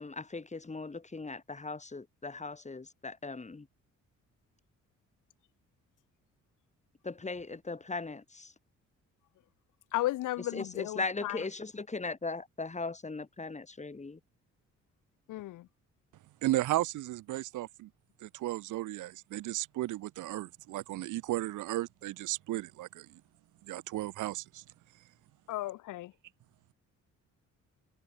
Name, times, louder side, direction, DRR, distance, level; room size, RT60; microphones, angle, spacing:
voice 1, 0.0-3.7 7.0-8.5 10.5-14.2, left 3 dB, 25° left, 6.2 m, -38 dB
voice 2, 9.9-11.4 15.3-15.7 25.5-26.1, left 16 dB, 90° left, 2.4 m, -34 dB
voice 3, 16.4-17.9 18.2-23.1 23.6-24.6, right 15 dB, 85° right, 2.4 m, -34 dB
cardioid pair, 90°, 30 cm